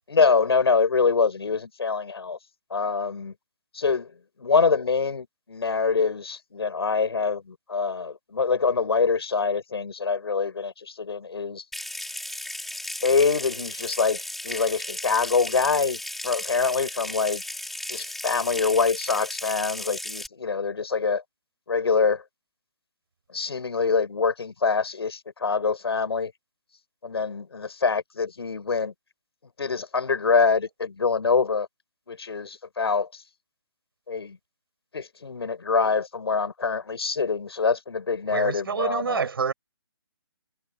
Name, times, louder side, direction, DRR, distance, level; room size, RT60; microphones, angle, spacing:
voice 1, 0.1-2.4 2.7-3.3 3.7-4.1 4.4-11.6 13.0-17.4 17.9-21.2 21.7-22.2 23.3-26.3 27.0-28.9 29.6-31.7 32.1-33.2 34.1-34.4 34.9-39.3, left 5 dB, 80° left, 6.8 m, -25 dB
Water tap faucet / Sink (filling or washing) / Trickle dribble, 11.7-20.3, left 1 dB, ahead, 5.2 m, -35 dB
voice 2, 38.3-39.5, right 6 dB, 65° right, 6.1 m, -27 dB
hypercardioid pair, 165°, 13 cm